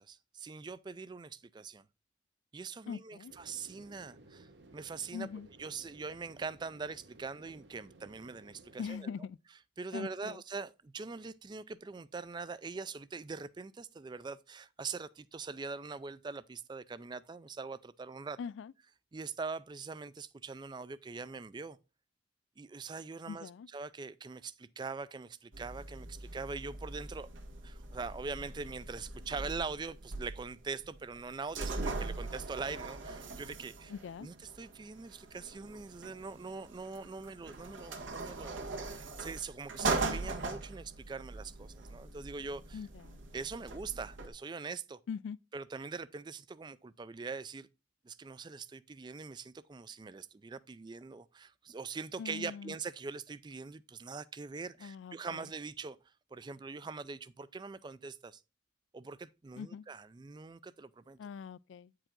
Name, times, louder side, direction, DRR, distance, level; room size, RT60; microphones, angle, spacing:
voice 1, 0.0-1.9 2.5-5.3 5.6-9.1 9.8-18.4 19.1-21.8 22.6-27.3 27.6-33.9 34.2-42.9 43.3-45.0 45.5-47.7 48.0-56.0 56.3-58.4 58.9-61.2, right 4 dB, 25° right, 0.3 m, -43 dB
voice 2, 2.9-3.3 5.1-5.5 8.8-9.4 9.9-10.4 18.4-18.7 23.3-23.7 33.9-34.3 42.7-43.2 45.1-45.4 52.2-52.7 54.8-55.4 59.5-59.8 61.2-62.1, left 6 dB, 75° left, 0.3 m, -42 dB
sound 1, 3.3-8.9, right 2 dB, 65° right, 1.0 m, -58 dB
sound 2, 25.5-44.3, right 3 dB, 90° right, 1.4 m, -41 dB
8.9 x 4.8 x 3.7 m
head